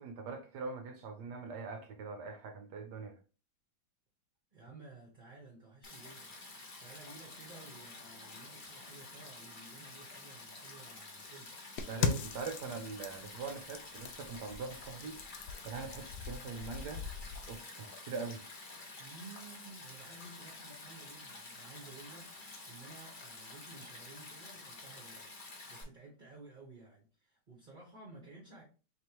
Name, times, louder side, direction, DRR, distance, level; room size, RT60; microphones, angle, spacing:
voice 1, 0.0-3.2 11.9-15.2 15.6-17.0 17.5-18.4, right 4 dB, 70° right, 1.0 m, -42 dB
voice 2, 4.5-11.5 19.0-28.6, right 3 dB, 35° right, 0.8 m, -54 dB
Stream, 5.8-25.8, left 2 dB, 55° left, 0.5 m, -50 dB
sound 1, 11.8-17.6, left 5 dB, 70° left, 1.0 m, -40 dB
4.3 x 3.2 x 2.9 m
omnidirectional pair, 2.3 m